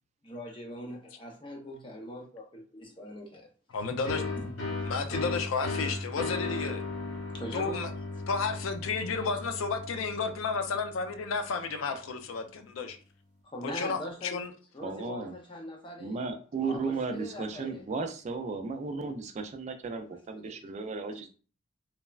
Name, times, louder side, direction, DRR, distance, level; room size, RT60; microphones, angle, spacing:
voice 1, 0.2-3.5 7.3-7.8 13.4-14.4 14.7-16.2 16.6-17.8 20.3-20.6, left 1 dB, 25° left, 0.6 m, -41 dB
voice 2, 3.7-4.6 4.8-6.8 7.5-7.9 8.3-13.0 13.6-14.5, left 4 dB, 85° left, 0.4 m, -32 dB
sound 1, 4.0-11.5, left 3 dB, 70° left, 0.8 m, -36 dB
voice 3, 14.8-15.3 16.0-21.3, right 4 dB, 35° right, 0.3 m, -35 dB
3.2 x 2.1 x 2.3 m
head